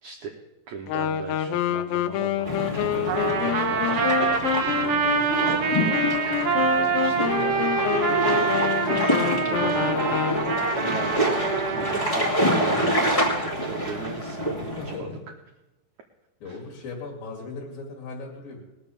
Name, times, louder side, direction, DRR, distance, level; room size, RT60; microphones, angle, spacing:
voice 1, 0.0-0.4 0.7-6.1 6.4-10.5 10.8-11.4 11.7-15.2 16.4-16.6, right 6 dB, 80° right, 2 dB, 1.6 m, -38 dB
Wind instrument woodwind instrument, 0.9-10.8, left 11 dB, 85° left, 2.9 m, -28 dB
sound 1, 2.4-15.0, equal, 15° left, 1.4 m, -27 dB
Trumpet, 3.1-12.1, right 5 dB, 60° right, 1.7 m, -25 dB
voice 2, 14.6-15.2 16.4-18.6, left 3 dB, 60° left, -1 dB, 3.8 m, -38 dB
20.0 x 7.2 x 7.0 m, 1.0 s
omnidirectional pair, 4.8 m